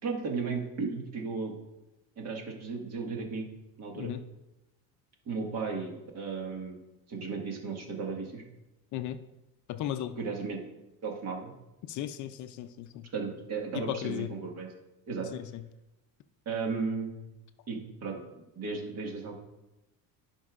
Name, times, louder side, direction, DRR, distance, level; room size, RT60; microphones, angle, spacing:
voice 1, 0.0-1.6 2.2-3.5 3.8-4.1 5.2-6.8 7.1-8.4 10.2-10.6 11.0-11.5 13.1-14.7 15.1-15.3 16.4-17.1 17.7-19.3, right 4 dB, 45° right, 1 dB, 1.7 m, -35 dB
voice 2, 9.7-10.2 11.9-13.1 13.7-14.3 15.3-15.6, left 12 dB, 50° left, 10 dB, 0.5 m, -35 dB
16.0 x 5.3 x 2.4 m, 0.97 s
cardioid pair, 140°, 37 cm